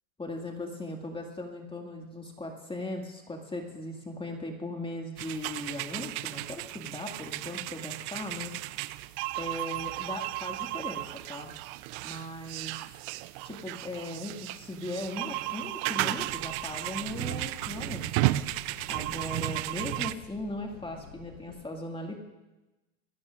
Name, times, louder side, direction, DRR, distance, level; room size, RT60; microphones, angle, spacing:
voice 1, 0.2-8.5 9.4-11.5 12.0-12.7 13.4-22.2, left 1 dB, 15° left, 2 dB, 2.1 m, -38 dB
sound 1, 5.2-20.1, right 18 dB, 55° right, 0.6 m, -34 dB
sound 2, 16.1-21.6, left 4 dB, 75° left, 3.8 m, -50 dB
22.5 x 17.0 x 2.5 m, 1.0 s
hypercardioid pair, 90°, 40 cm